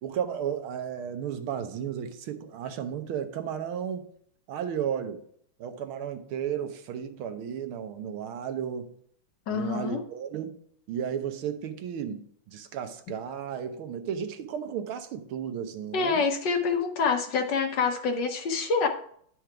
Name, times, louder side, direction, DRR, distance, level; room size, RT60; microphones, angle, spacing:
voice 1, 0.0-4.1 4.5-5.2 5.6-8.9 9.5-10.6 10.9-16.2, right 8 dB, 75° right, 8 dB, 1.7 m, -34 dB
voice 2, 9.5-10.0 15.9-18.9, left 5 dB, 60° left, 5 dB, 1.4 m, -26 dB
10.5 x 4.6 x 4.8 m, 0.63 s
omnidirectional pair, 2.3 m